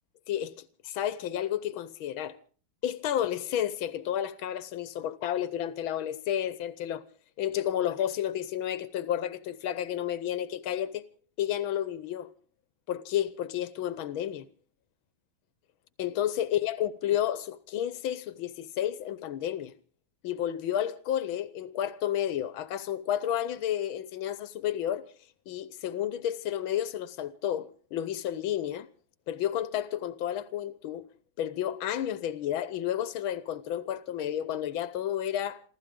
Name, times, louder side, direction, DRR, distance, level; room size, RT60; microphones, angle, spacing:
voice 1, 0.3-2.4 2.8-7.0 7.4-11.0 11.4-12.3 12.9-14.5 16.0-19.7 20.2-25.0 25.5-28.9 29.3-31.0 31.4-35.6, left 11 dB, 85° left, 1.7 m, -31 dB
28.0 x 13.5 x 3.7 m
omnidirectional pair, 2.2 m